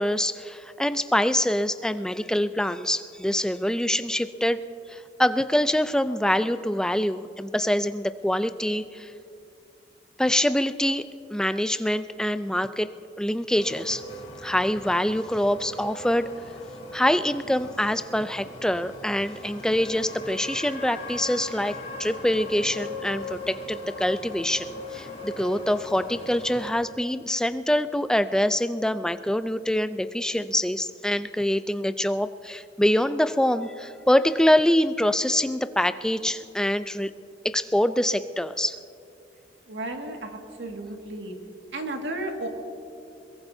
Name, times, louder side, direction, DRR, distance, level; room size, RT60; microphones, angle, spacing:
voice 1, 0.0-4.6 4.9-9.1 10.2-11.0 11.3-12.9 13.2-14.0 14.4-16.3 16.9-37.1 37.4-38.8, left 1 dB, 5° left, 12 dB, 0.4 m, -25 dB
sound 1, 13.6-26.7, left 2 dB, 35° left, 3.2 m, -39 dB
voice 2, 39.7-41.3 41.7-42.5, right 1 dB, 85° right, 2 dB, 2.0 m, -33 dB
22.5 x 22.0 x 2.7 m, 2.7 s
head